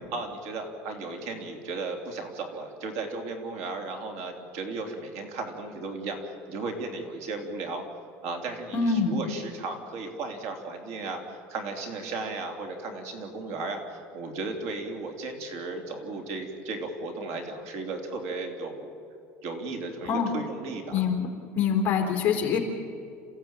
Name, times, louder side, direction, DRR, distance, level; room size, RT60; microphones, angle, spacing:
voice 1, 0.1-7.8 8.2-18.9 19.4-21.0, right 3 dB, 65° right, 4 dB, 3.3 m, -35 dB
voice 2, 8.7-9.1 20.0-20.3 20.9-21.3 21.5-22.6, left 6 dB, 30° left, 2 dB, 3.6 m, -25 dB
27.5 x 15.5 x 9.0 m, 2.4 s
cardioid pair, 165°, 5 cm